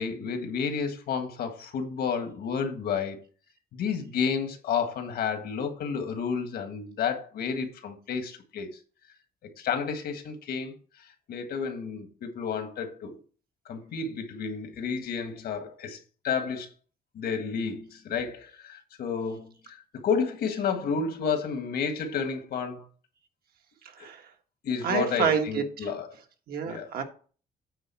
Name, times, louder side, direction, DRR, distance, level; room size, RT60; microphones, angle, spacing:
voice 1, 0.0-3.2 3.7-8.7 9.6-10.7 11.3-13.2 13.7-16.0 16.2-16.7 17.1-22.9 24.6-26.1 26.7-26.9, left 6 dB, 75° left, 1.6 m, -31 dB
voice 2, 24.8-25.9 26.5-27.0, right 7 dB, 70° right, 1.5 m, -28 dB
8.9 x 4.0 x 7.0 m
cardioid pair, 155°, 16 cm